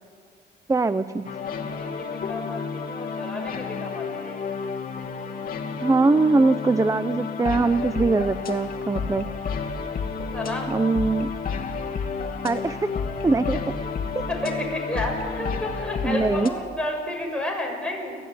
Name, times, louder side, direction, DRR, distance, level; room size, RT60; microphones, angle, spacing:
voice 1, 0.7-1.3 5.8-9.3 10.7-11.3 12.4-12.9 13.2-13.6 14.1-14.2 16.0-16.5, right 3 dB, 15° right, 13 dB, 0.7 m, -22 dB
sound 1, 1.2-16.5, left 5 dB, 45° left, 2.6 m, -31 dB
voice 2, 1.5-4.4 10.3-10.7 14.3-18.2, left 1 dB, 5° left, 0 dB, 7.4 m, -31 dB
30.0 x 13.5 x 9.6 m, 2.1 s
cardioid pair, 90°, 20 cm